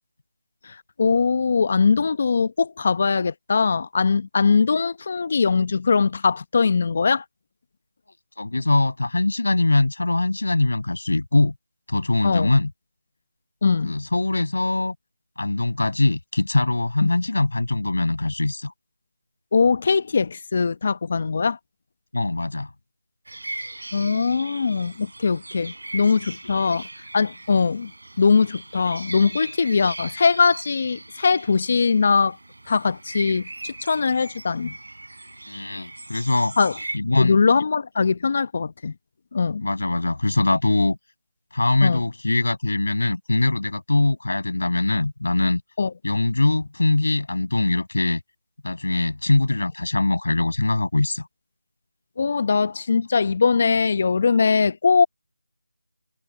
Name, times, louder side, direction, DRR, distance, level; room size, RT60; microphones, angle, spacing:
voice 1, 0.6-7.2 12.2-12.5 13.6-14.0 17.0-17.1 19.5-21.6 23.9-26.8 27.1-27.9 28.2-32.4 32.7-34.7 36.6-36.8 37.2-38.9 39.3-39.7 41.8-42.0 45.8-45.9 52.2-55.1, left 5 dB, 45° left, 0.9 m, -21 dB
voice 2, 8.4-11.5 11.9-12.7 13.8-14.9 15.4-18.7 22.1-22.7 35.5-36.6 36.9-37.4 39.6-41.0 41.5-45.6 46.0-48.2 48.6-51.3, left 2 dB, 75° left, 6.0 m, -22 dB
sound 1, 23.3-37.0, right 2 dB, 80° right, 5.6 m, -39 dB
figure-of-eight pair, 165°, 0 cm